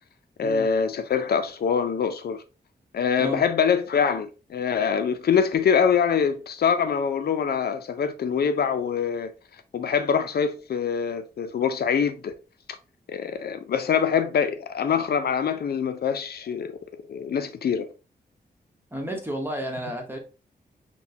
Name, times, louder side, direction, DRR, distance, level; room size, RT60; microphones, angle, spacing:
voice 1, 0.4-2.4 2.9-9.3 9.7-12.3 13.1-16.7 17.1-17.9, left 7 dB, 75° left, 0.5 m, -24 dB
voice 2, 18.9-20.2, equal, 15° right, 1.0 m, -31 dB
5.9 x 2.2 x 2.7 m
wide cardioid pair, 125°, 16 cm